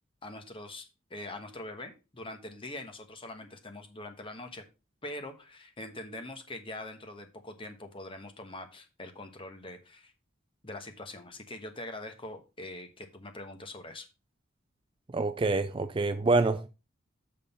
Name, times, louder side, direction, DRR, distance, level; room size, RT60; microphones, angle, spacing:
voice 1, 0.2-4.6 5.0-10.1 10.6-14.1, left 1 dB, 25° left, 1.3 m, -43 dB
voice 2, 15.1-16.7, right 3 dB, 25° right, 0.4 m, -26 dB
6.7 x 5.5 x 5.4 m
head